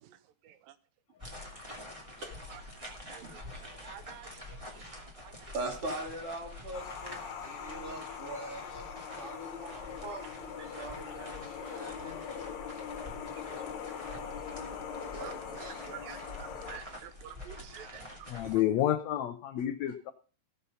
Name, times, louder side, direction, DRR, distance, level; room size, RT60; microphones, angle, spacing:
sound 1, 1.2-18.5, left 1 dB, 10° right, 1.9 m, -47 dB
voice 1, 2.5-4.8 5.2-5.3 9.1-9.2 10.6-10.7 13.5-13.6 14.1-14.2 15.1-18.0 18.4-18.5, right 10 dB, 80° right, 12 dB, 2.4 m, -50 dB
voice 2, 3.2-3.6 5.5-8.9 9.2-12.2 14.9-16.0 18.4-18.6, right 2 dB, 40° right, 1 dB, 3.6 m, -42 dB
sound 2, 6.7-16.8, left 7 dB, 60° left, 2.2 m, -42 dB
voice 3, 18.3-20.1, left 12 dB, 80° left, 10 dB, 1.6 m, -29 dB
16.0 x 6.9 x 5.6 m, 0.38 s
omnidirectional pair, 4.0 m